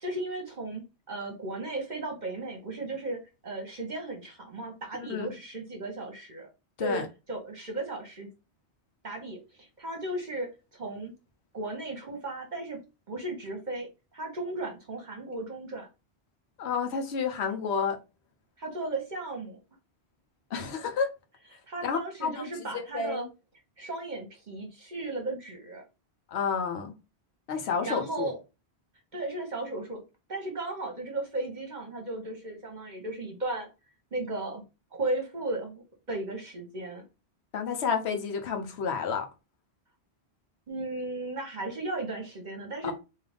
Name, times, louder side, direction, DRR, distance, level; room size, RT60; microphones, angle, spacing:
voice 1, 0.0-6.5 6.8-8.3 9.0-11.1 11.5-12.8 13.1-13.9 14.1-15.9 18.6-19.6 21.7-23.2 23.8-25.8 27.6-28.4 29.1-30.0 30.3-33.7 34.1-34.6 34.9-35.8 36.1-37.0 40.7-42.9, right 2 dB, 45° right, 1.0 m, -35 dB
voice 2, 5.0-5.3 6.8-7.1 16.6-18.0 20.5-21.1 21.8-23.3 26.3-26.9 27.5-28.4 37.5-39.3 42.8-42.9, left 6 dB, 85° left, 1.0 m, -30 dB
3.7 x 2.7 x 3.3 m
omnidirectional pair, 1.1 m